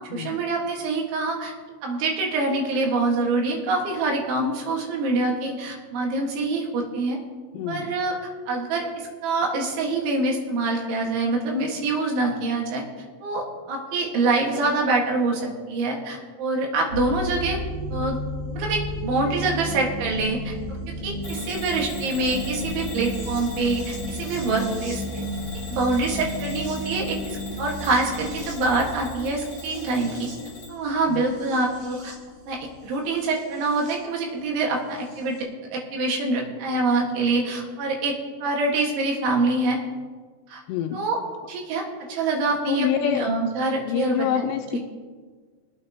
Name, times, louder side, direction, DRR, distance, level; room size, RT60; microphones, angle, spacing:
voice 1, 0.1-1.5 1.8-7.2 7.7-8.2 8.5-12.8 13.2-17.6 17.9-18.2 18.5-20.8 21.0-25.0 25.7-30.3 30.7-32.2 32.5-35.4 35.7-39.8 40.5-40.6 40.9-41.2 41.5-44.8, right 3 dB, 80° right, 0 dB, 4.2 m, -25 dB
voice 2, 7.5-7.9 31.1-31.2 40.7-41.0 42.7-43.3 43.8-44.8, left 10 dB, 85° left, 5 dB, 2.7 m, -26 dB
sound 1, 16.9-33.9 35.1-35.2, equal, 35° right, 4.1 m, -33 dB
Bell / Alarm, 21.2-30.8, left 2 dB, 10° left, 1.8 m, -41 dB
23.0 x 8.7 x 2.9 m, 1.5 s
omnidirectional pair, 5.3 m